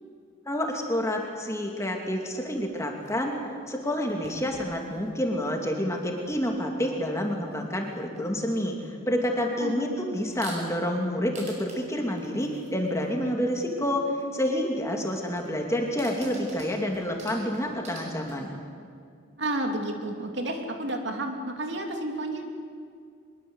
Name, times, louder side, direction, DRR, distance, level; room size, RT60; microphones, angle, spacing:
voice 1, 0.5-3.4 3.7-18.5, equal, 15° left, 1 dB, 2.7 m, -28 dB
sound 1, 2.5-3.5 4.0-6.5 6.8-7.9 8.2-8.8 9.4-9.6 10.1-10.9 11.3-14.2 14.9-18.5, right 2 dB, 35° right, 6.0 m, -48 dB
voice 2, 9.6-10.0 19.4-22.4, right 1 dB, 60° right, 3 dB, 2.9 m, -31 dB
23.5 x 22.0 x 8.1 m, 2.3 s
head